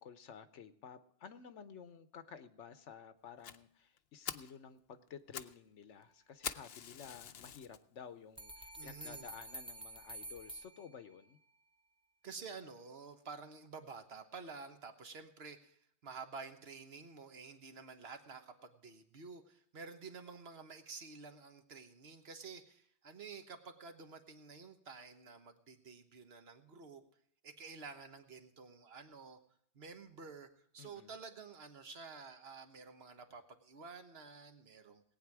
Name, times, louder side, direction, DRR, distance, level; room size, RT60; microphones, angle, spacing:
voice 1, 0.0-11.4 30.8-31.1, left 7 dB, 80° left, 11 dB, 1.1 m, -53 dB
Fire, 3.4-3.6 4.0-4.1 4.2-4.5 5.1-5.6 5.8-5.9 6.4-7.8 8.4-8.5 9.0-9.1 9.4-9.5 9.8-9.9, left 9 dB, 60° left, 0.8 m, -44 dB
sound 1, 8.4-11.4, right 2 dB, 10° right, 0.3 m, -49 dB
voice 2, 8.7-9.3 12.2-27.0 27.4-29.4 29.7-30.5 30.7-35.0, right 4 dB, 60° right, 7 dB, 1.4 m, -51 dB
19.0 x 8.9 x 4.7 m, 0.69 s
omnidirectional pair, 1.2 m